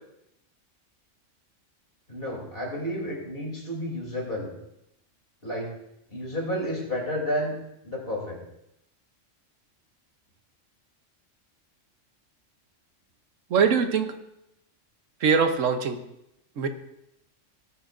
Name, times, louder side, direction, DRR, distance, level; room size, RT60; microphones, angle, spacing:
voice 1, 2.1-4.5 5.4-5.7 6.1-7.5 7.8-8.4, equal, 45° left, -1 dB, 3.3 m, -31 dB
voice 2, 13.5-14.2 15.2-16.0 16.6-16.7, right 6 dB, 80° right, 7 dB, 1.3 m, -22 dB
18.0 x 9.6 x 2.6 m, 0.83 s
omnidirectional pair, 1.3 m